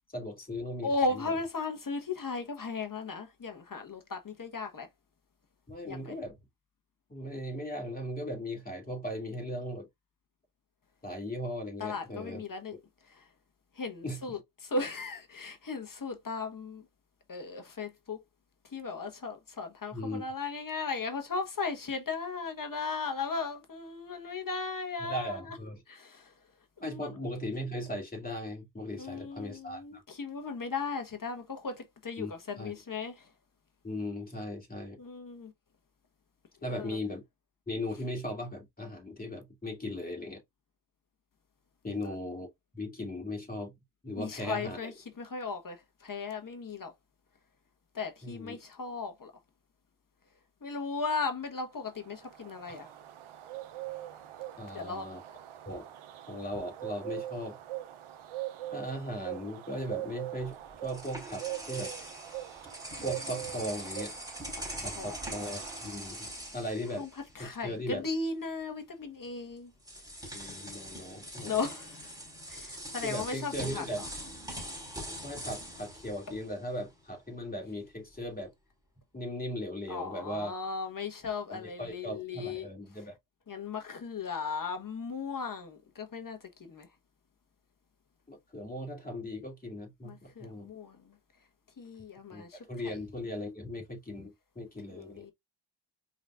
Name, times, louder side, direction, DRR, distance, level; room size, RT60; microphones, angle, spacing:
voice 1, 0.1-1.3 5.7-6.4 7.1-9.9 11.0-12.4 14.0-14.4 19.9-20.2 25.0-25.8 26.8-30.0 32.2-32.7 33.8-35.0 36.6-37.2 37.7-40.4 41.8-42.5 42.7-43.7 44.0-44.9 48.2-48.6 52.7-52.8 54.6-55.2 55.6-55.9 56.3-57.6 58.7-61.9 63.0-64.1 64.8-67.1 67.4-68.1 70.3-71.6 73.0-74.1 75.2-78.5 79.1-80.5 81.5-83.2 88.3-90.7 92.3-95.2, left 1 dB, 20° left, 2.8 m, -38 dB
voice 2, 0.8-4.9 5.9-6.1 11.8-12.8 13.2-13.3 13.8-16.8 17.3-18.2 18.7-25.5 25.9-26.3 26.8-27.1 29.0-33.3 35.0-35.5 36.7-37.0 41.9-42.0 44.2-44.9 45.2-46.9 47.9-49.3 50.6-52.9 54.7-55.1 64.6-65.2 67.0-67.1 67.3-69.7 71.4-72.0 72.5-74.0 79.9-82.7 83.5-86.4 86.7-86.9 90.0-91.0 91.8-93.0 94.9-95.3, left 4 dB, 45° left, 1.4 m, -36 dB
sound 1, 51.9-66.5, right 15 dB, 90° right, 0.8 m, -42 dB
sound 2, 60.5-67.6 67.9-68.1 69.2-69.3 69.8-77.0, equal, 10° right, 3.8 m, -43 dB
4.9 x 4.1 x 2.5 m
cardioid pair, 70°, 48 cm